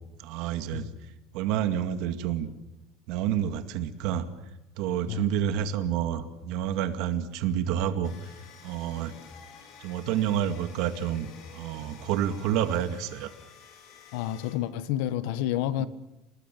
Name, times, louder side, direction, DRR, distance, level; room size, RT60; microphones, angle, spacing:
voice 1, 0.2-0.9 1.3-2.5 3.1-4.3 4.8-8.1 8.6-9.2 9.8-13.3 15.8-15.9, right 10 dB, 60° right, 2.1 m, -29 dB
sound 1, 8.0-14.6, left 6 dB, 50° left, 4.9 m, -51 dB
voice 2, 14.1-15.9, left 12 dB, 75° left, 1.4 m, -29 dB
28.5 x 19.0 x 7.7 m
cardioid pair, 165°, 0 cm